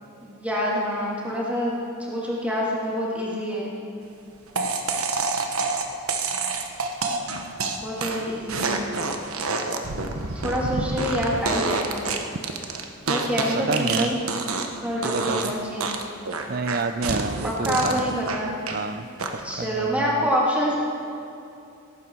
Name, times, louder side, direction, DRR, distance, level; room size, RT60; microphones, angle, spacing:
voice 1, 0.2-3.7 7.8-8.9 10.3-12.1 13.1-14.2 14.8-16.0 17.7-18.5 19.4-20.7, equal, 5° right, -5 dB, 2.5 m, -26 dB
sound 1, 4.6-14.8 15.0-15.5 15.8-18.8 19.2-19.6, right 4 dB, 80° right, 1.2 m, -28 dB
voice 2, 10.7-11.2 13.7-14.1 15.0-15.5 16.5-18.1 18.7-19.1 19.6-20.3, right 3 dB, 45° right, 12 dB, 0.6 m, -29 dB
18.0 x 15.0 x 4.7 m, 2.6 s
head